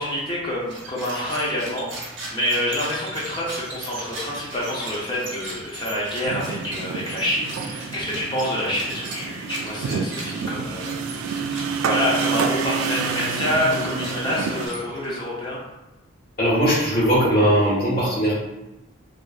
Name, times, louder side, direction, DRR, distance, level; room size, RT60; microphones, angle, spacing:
voice 1, 0.0-11.5 11.9-15.6, left 1 dB, 20° left, -6 dB, 0.6 m, -27 dB
sound 1, 0.6-15.2, right 2 dB, 60° right, 0.7 m, -38 dB
sound 2, 6.2-14.7, right 5 dB, 90° right, 0.3 m, -28 dB
voice 2, 16.4-18.3, equal, 45° left, -8 dB, 1.2 m, -19 dB
2.8 x 2.5 x 2.4 m, 0.98 s
head